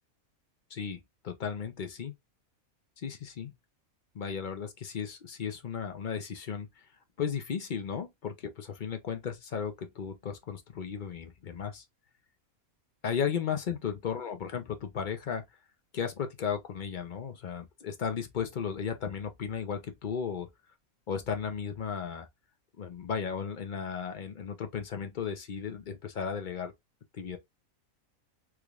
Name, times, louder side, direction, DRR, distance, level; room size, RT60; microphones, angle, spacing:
voice 1, 0.7-2.1 3.0-3.5 4.1-6.7 7.2-11.8 13.0-15.4 15.9-20.5 21.1-22.3 22.8-26.7 27.1-27.4, left 7 dB, 50° left, 0.6 m, -35 dB
3.5 x 3.2 x 2.4 m
omnidirectional pair, 1.5 m